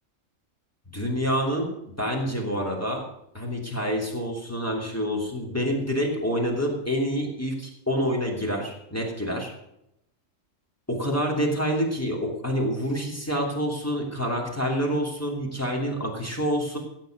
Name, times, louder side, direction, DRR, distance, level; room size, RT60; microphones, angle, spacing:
voice 1, 0.9-1.7 2.0-3.0 3.3-9.5 10.9-16.8, equal, 10° left, -1 dB, 2.9 m, -27 dB
15.5 x 7.7 x 6.5 m, 0.81 s
omnidirectional pair, 1.4 m